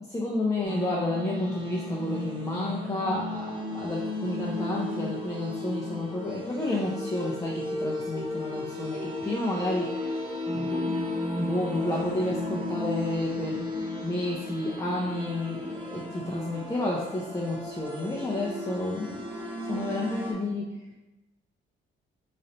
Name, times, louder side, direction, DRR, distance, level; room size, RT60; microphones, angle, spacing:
voice 1, 0.0-11.0 11.4-13.6 14.0-19.2 19.7-20.7, left 1 dB, 15° left, -4 dB, 0.6 m, -31 dB
sound 1, 0.6-20.3, left 1 dB, 25° right, 0.9 m, -34 dB
3.1 x 2.6 x 4.1 m, 1.0 s
cardioid pair, 90°, 20 cm